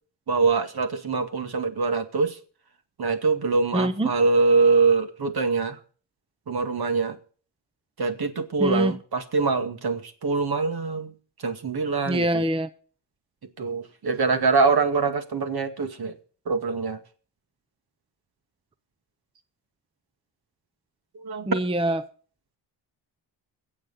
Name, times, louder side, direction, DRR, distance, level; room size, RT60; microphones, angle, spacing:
voice 1, 0.3-2.4 3.0-5.8 6.5-7.2 8.0-11.1 11.4-12.5 13.6-16.2 16.5-17.0 21.1-21.5, right 4 dB, 55° right, 2.1 m, -24 dB
voice 2, 3.7-4.1 8.6-9.0 12.1-12.7 21.5-22.0, right 1 dB, 15° right, 0.7 m, -24 dB
23.0 x 7.8 x 4.2 m
cardioid pair, 75°, 44 cm